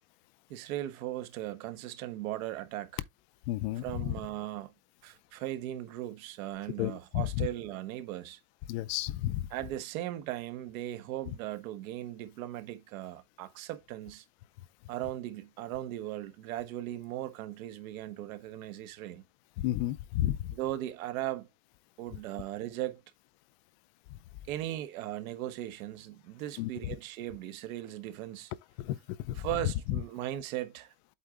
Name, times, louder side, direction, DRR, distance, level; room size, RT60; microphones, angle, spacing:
voice 1, 0.5-3.0 3.8-4.7 5.0-8.4 9.5-14.2 14.9-19.2 20.5-21.5 22.0-23.0 24.5-28.5 29.3-30.9, right 14 dB, 75° right, 1.2 m, -38 dB
voice 2, 3.5-4.1 6.8-7.5 8.7-9.5 19.6-20.5 26.6-26.7 28.8-29.0 29.2-29.5, left 14 dB, 50° left, 0.5 m, -32 dB
8.2 x 3.9 x 3.6 m
supercardioid pair, 160°, 42 cm